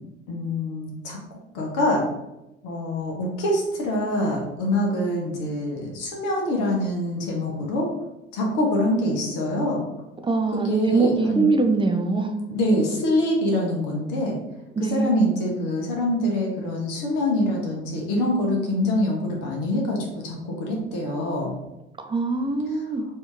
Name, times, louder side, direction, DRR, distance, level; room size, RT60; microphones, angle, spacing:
voice 1, 0.3-2.1 2.6-7.9 8.3-9.9 10.5-11.5 12.5-14.4 14.9-21.5, left 1 dB, 60° left, 0 dB, 1.2 m, -25 dB
voice 2, 10.2-12.3 14.8-15.4 22.0-23.1, right 3 dB, 15° right, 4 dB, 0.5 m, -23 dB
4.3 x 2.9 x 3.5 m, 0.94 s
figure-of-eight pair, 55°, 35 cm